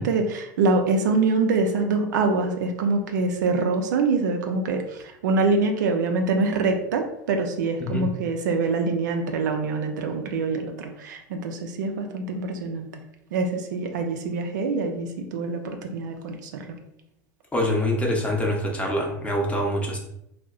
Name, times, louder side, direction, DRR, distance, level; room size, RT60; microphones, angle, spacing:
voice 1, 0.0-12.9 13.3-16.8, right 3 dB, 80° right, 5 dB, 0.4 m, -25 dB
voice 2, 17.5-20.0, left 1 dB, 15° left, -1 dB, 0.7 m, -25 dB
2.6 x 2.0 x 2.4 m, 0.79 s
hypercardioid pair, 95°, 10 cm